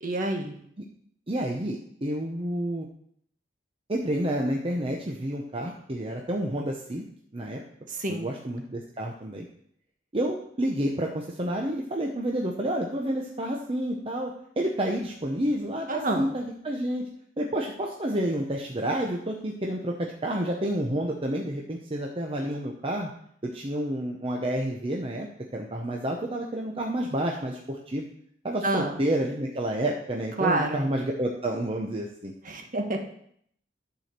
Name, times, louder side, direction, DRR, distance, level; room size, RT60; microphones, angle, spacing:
voice 1, 0.0-0.5 7.9-8.3 15.9-16.2 28.6-28.9 30.4-30.8 32.4-33.0, right 2 dB, 45° right, 3 dB, 1.5 m, -27 dB
voice 2, 1.3-2.9 3.9-7.0 7.3-7.6 8.1-9.5 10.1-17.0 17.4-23.1 23.4-28.0 28.4-32.3, right 1 dB, 30° right, 0 dB, 0.9 m, -29 dB
11.0 x 4.8 x 6.7 m, 0.68 s
head